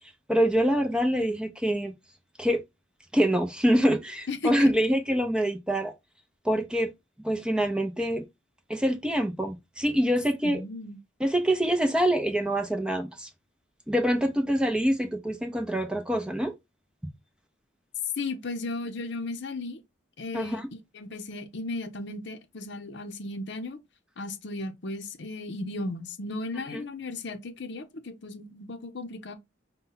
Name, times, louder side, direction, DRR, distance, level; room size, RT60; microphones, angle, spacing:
voice 1, 0.3-1.9 2.4-2.6 3.1-5.9 6.4-6.9 7.2-8.2 8.7-10.6 11.2-13.3 13.9-16.5 20.3-20.7 26.7-26.8, equal, 5° right, 0.6 m, -25 dB
voice 2, 4.3-4.7 10.4-11.0 18.2-19.8 20.2-20.6 20.9-23.8 24.2-29.3, left 2 dB, 60° left, 0.7 m, -35 dB
5.3 x 2.2 x 3.9 m
head